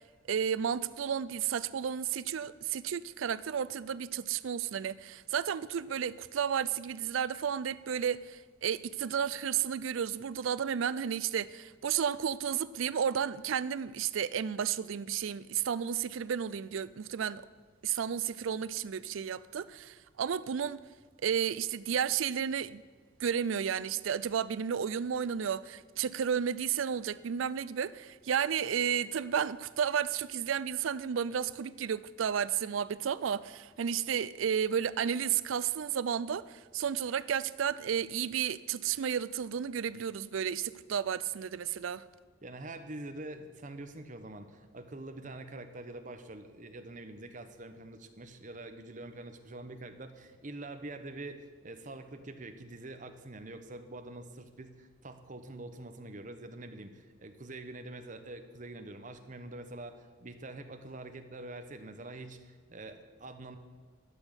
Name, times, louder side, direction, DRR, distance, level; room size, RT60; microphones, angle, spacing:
voice 1, 0.3-17.4 17.8-20.8 21.2-22.8 23.2-42.0, right 8 dB, 85° right, 17 dB, 0.4 m, -32 dB
voice 2, 42.4-63.6, right 2 dB, 40° right, 8 dB, 1.0 m, -45 dB
12.5 x 6.2 x 8.0 m, 1.5 s
head